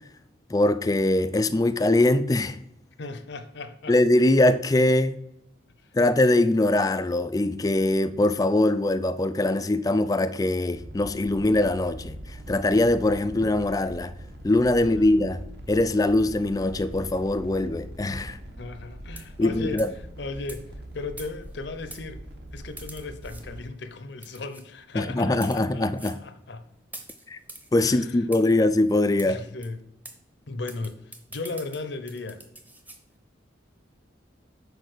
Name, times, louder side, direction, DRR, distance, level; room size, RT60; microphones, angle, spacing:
voice 1, 0.5-2.6 3.9-5.2 5.9-14.1 14.4-15.4 15.7-18.4 19.4-19.9 24.9-26.1 27.3-27.4 27.7-29.4, left 2 dB, 20° left, 0.3 m, -22 dB
voice 2, 3.0-3.9 5.8-5.9 14.8-15.1 18.6-19.9 20.2-22.2 22.5-26.7 27.8-28.5 29.2-29.8 30.5-32.4, left 3 dB, 60° left, 0.7 m, -36 dB
sound 1, 10.7-23.6, right 1 dB, 55° right, 1.1 m, -42 dB
sound 2, 19.2-19.4 19.8-20.0 20.5-20.6 21.2-21.5 21.9-22.0 22.8-23.4 24.2-24.6 25.3-25.6 26.0-26.2 26.9-27.7 28.3-28.5 29.2-29.3 29.6-29.7 30.0-30.2 30.7-33.0, right 2 dB, 10° right, 0.7 m, -44 dB
6.5 x 4.7 x 6.5 m
head